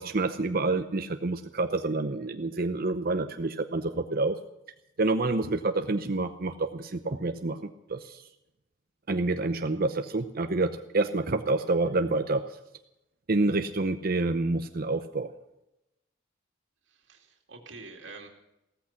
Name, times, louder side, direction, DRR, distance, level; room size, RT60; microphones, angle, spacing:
voice 1, 0.0-4.4 5.0-7.6 7.9-8.2 9.1-12.4 13.3-15.3, right 2 dB, 50° right, 8 dB, 0.8 m, -28 dB
voice 2, 16.9-18.3, right 3 dB, 75° right, 1 dB, 2.5 m, -46 dB
16.5 x 14.5 x 5.9 m, 0.89 s
head